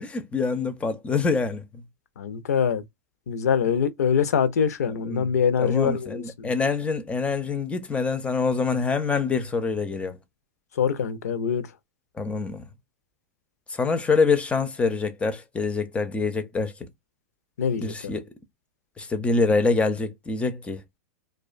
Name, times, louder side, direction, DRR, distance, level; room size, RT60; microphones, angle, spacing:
voice 1, 0.0-1.6 5.0-5.3 5.6-10.2 12.2-12.7 13.7-16.9 17.8-18.2 19.0-20.8, left 4 dB, 15° left, 0.4 m, -25 dB
voice 2, 2.2-2.8 3.3-6.5 10.8-11.7 17.6-18.2, left 7 dB, 85° left, 0.4 m, -24 dB
2.4 x 2.1 x 2.3 m
hypercardioid pair, 115°, 8 cm